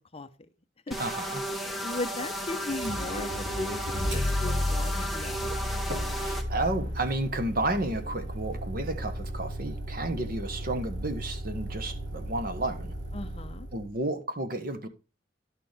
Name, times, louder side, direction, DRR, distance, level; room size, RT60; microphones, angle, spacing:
sound 1, 0.9-6.4, equal, ahead, 1.2 m, -34 dB
voice 1, 1.0-1.4 6.2-12.9 13.7-14.9, right 2 dB, 50° right, 1.3 m, -32 dB
voice 2, 1.5-5.6 13.1-13.7, left 2 dB, 30° left, 0.7 m, -37 dB
Motor vehicle (road), 2.7-13.9, equal, 75° right, 2.8 m, -34 dB
11.0 x 6.5 x 3.4 m
head